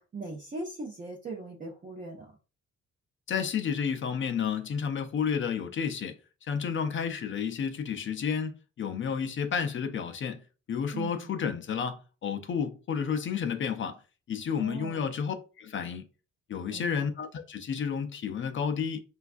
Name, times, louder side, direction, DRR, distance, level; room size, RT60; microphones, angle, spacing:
voice 1, 0.0-2.3 10.9-11.4 14.6-15.1 16.7-17.1, right 2 dB, 30° right, 0.6 m, -40 dB
voice 2, 3.3-10.4 10.7-14.0 14.3-16.0 16.5-19.0, left 7 dB, 45° left, 0.4 m, -31 dB
3.2 x 2.4 x 2.4 m
cardioid pair, 115°, 29 cm